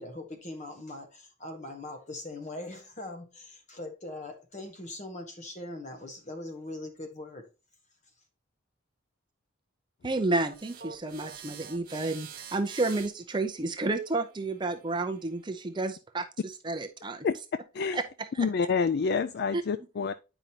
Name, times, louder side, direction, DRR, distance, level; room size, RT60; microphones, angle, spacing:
voice 1, 0.0-7.5, left 2 dB, 35° left, 1.3 m, -41 dB
voice 2, 10.0-17.3 17.9-18.0 18.3-18.5, right 2 dB, 20° right, 0.6 m, -31 dB
sound 1, 10.4-15.6, right 7 dB, 45° right, 1.1 m, -48 dB
voice 3, 18.4-20.1, left 5 dB, 50° left, 0.3 m, -27 dB
9.0 x 5.2 x 2.8 m
head